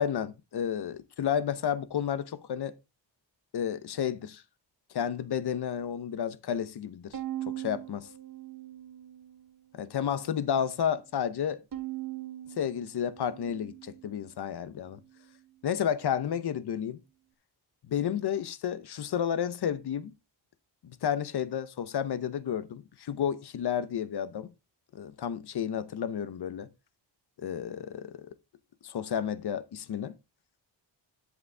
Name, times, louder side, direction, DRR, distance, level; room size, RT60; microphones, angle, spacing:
voice 1, 0.0-2.7 3.5-4.4 4.9-7.2 7.6-8.1 9.7-11.6 12.6-15.0 15.6-17.0 17.9-20.1 20.8-24.5 24.9-26.7 27.4-28.3 28.8-30.1, left 8 dB, 60° left, 0.9 m, -31 dB
Bowed string instrument, 7.1-9.5 10.0-10.7 11.7-14.2, right 13 dB, 50° right, 1.2 m, -41 dB
10.5 x 8.3 x 3.4 m
wide cardioid pair, 160°, 45 cm